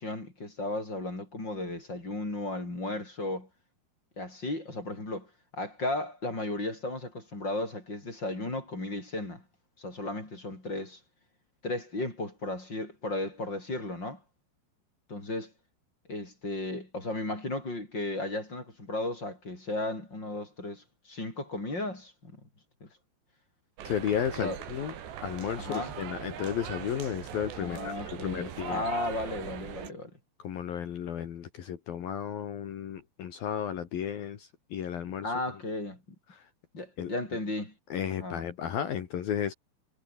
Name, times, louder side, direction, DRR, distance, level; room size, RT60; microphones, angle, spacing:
voice 1, 0.0-3.5 4.2-5.3 5.5-9.4 9.8-11.0 11.6-14.2 15.1-15.5 16.1-22.4 24.4-24.6 25.6-25.9 27.6-30.1 35.2-36.0 36.7-37.7 38.2-38.4, left 2 dB, 25° left, 7.4 m, -35 dB
sound 1, 23.8-29.9, right 9 dB, 85° right, 4.9 m, -41 dB
voice 2, 23.9-24.9 25.2-28.8 30.4-35.3 36.3-36.5 37.0-37.1 37.9-39.5, left 9 dB, 60° left, 3.8 m, -33 dB
omnidirectional pair, 4.8 m